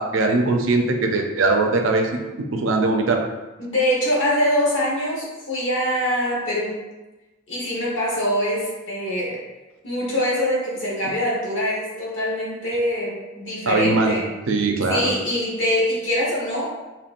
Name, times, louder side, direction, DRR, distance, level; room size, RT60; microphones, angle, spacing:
voice 1, 0.0-2.1 2.5-3.2 13.7-14.1 14.5-15.1, right 3 dB, 85° right, 2 dB, 0.6 m, -20 dB
voice 2, 3.6-6.8 7.5-9.4 9.8-14.2 14.9-16.6, equal, 70° left, -5 dB, 1.3 m, -23 dB
4.4 x 3.0 x 2.5 m, 1.1 s
head